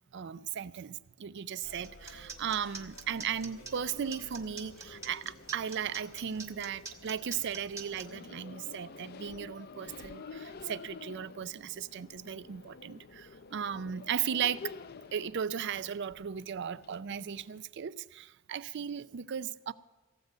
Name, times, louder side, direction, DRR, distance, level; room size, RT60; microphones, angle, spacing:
voice 1, 0.1-14.6 15.1-19.7, right 8 dB, 50° right, 0.4 m, -36 dB
sound 1, 1.6-8.1, left 2 dB, 65° left, 1.6 m, -55 dB
sound 2, 1.8-8.0, right 4 dB, 15° right, 1.2 m, -44 dB
sound 3, 3.9-17.6, left 4 dB, 45° left, 0.5 m, -50 dB
17.0 x 8.2 x 6.7 m
head